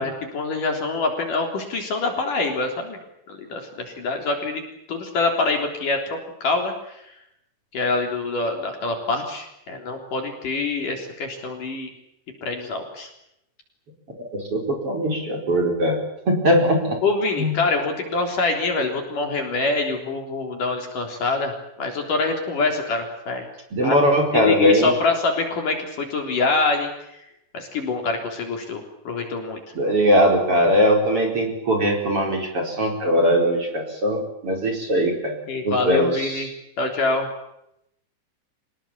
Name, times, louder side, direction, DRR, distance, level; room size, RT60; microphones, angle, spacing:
voice 1, 0.0-3.0 3.3-4.6 4.9-7.0 7.7-11.9 12.4-13.1 17.0-23.5 23.8-24.0 24.3-26.9 27.5-29.6 35.5-36.5 36.8-37.3, left 3 dB, 50° left, 4 dB, 5.0 m, -25 dB
voice 2, 14.2-16.0 16.3-17.0 17.4-17.5 23.7-25.0 29.7-35.4 35.6-36.5, equal, 30° right, 3 dB, 5.1 m, -20 dB
25.5 x 20.5 x 8.6 m, 0.80 s
omnidirectional pair, 5.0 m